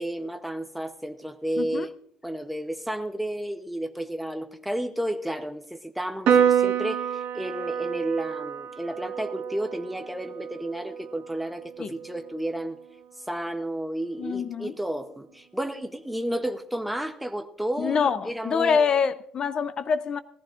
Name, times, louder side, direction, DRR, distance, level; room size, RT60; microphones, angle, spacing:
voice 1, 0.0-1.9 2.2-12.8 13.3-18.9, right 1 dB, ahead, 0.7 m, -32 dB
voice 2, 1.6-1.9 11.8-11.9 14.2-14.7 17.8-20.2, left 6 dB, 35° left, 0.6 m, -25 dB
Piano, 6.3-12.9, right 8 dB, 75° right, 1.4 m, -28 dB
19.5 x 14.5 x 2.5 m
cardioid pair, 170°, 2 cm